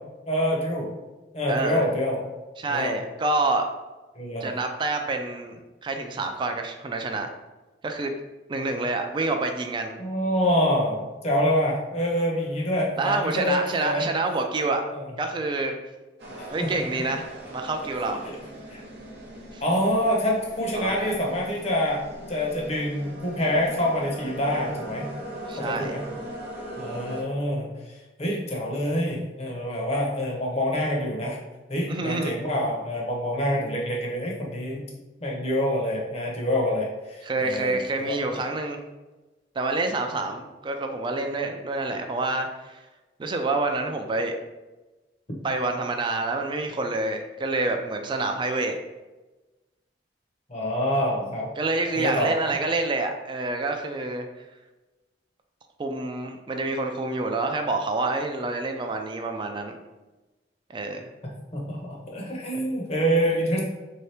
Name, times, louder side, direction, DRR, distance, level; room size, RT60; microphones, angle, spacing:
voice 1, 0.3-0.9 1.3-2.2 2.7-3.0 4.2-4.5 10.0-14.1 14.9-15.1 16.4-16.7 18.7-18.8 19.6-22.0 22.3-25.1 25.6-26.0 26.8-27.7 28.2-31.4 31.7-34.8 35.2-37.8 38.1-38.3 50.5-51.5 51.9-52.3 61.5-63.7, equal, 35° left, -1 dB, 0.8 m, -26 dB
voice 2, 1.5-1.9 2.6-3.7 4.4-7.3 7.8-8.1 8.5-9.9 13.0-14.8 15.2-15.8 16.5-18.2 19.5-19.6 20.7-21.2 25.5-25.9 31.9-32.3 37.2-38.8 39.6-42.8 43.2-44.4 45.4-48.7 51.6-54.3 55.8-59.8 60.7-61.1, right 3 dB, 25° right, 5 dB, 0.3 m, -27 dB
sound 1, 16.2-27.2, right 1 dB, 60° right, 0.9 m, -40 dB
3.5 x 2.8 x 3.3 m, 1.1 s
head